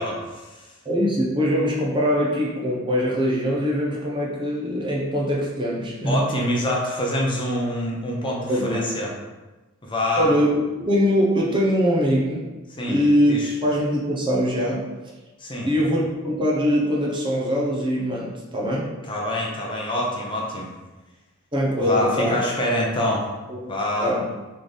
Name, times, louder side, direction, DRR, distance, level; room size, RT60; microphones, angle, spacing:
voice 1, 0.0-0.7 6.1-9.1 9.8-10.3 12.8-13.0 13.3-13.5 15.4-15.7 19.0-20.7 21.8-23.3 23.7-24.1, left 1 dB, 25° left, -3 dB, 0.7 m, -25 dB
voice 2, 0.8-6.3 8.5-8.9 10.2-12.5 12.9-14.9 15.7-18.9 21.5-22.4 23.5-23.7 24.0-24.3, equal, 20° right, -4 dB, 0.7 m, -22 dB
3.7 x 3.2 x 4.0 m, 1.1 s
head